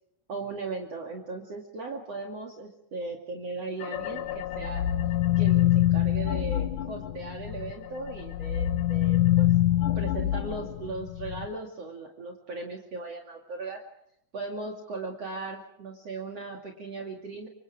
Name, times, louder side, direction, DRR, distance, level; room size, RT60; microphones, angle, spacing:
voice 1, 0.3-4.8 5.4-9.5 9.9-13.8 14.3-17.5, right 3 dB, 45° right, 1 dB, 3.2 m, -37 dB
sound 1, 3.8-7.7 8.1-11.5, left 14 dB, 70° left, 2.5 m, -25 dB
29.0 x 25.5 x 4.9 m, 0.75 s
omnidirectional pair, 4.2 m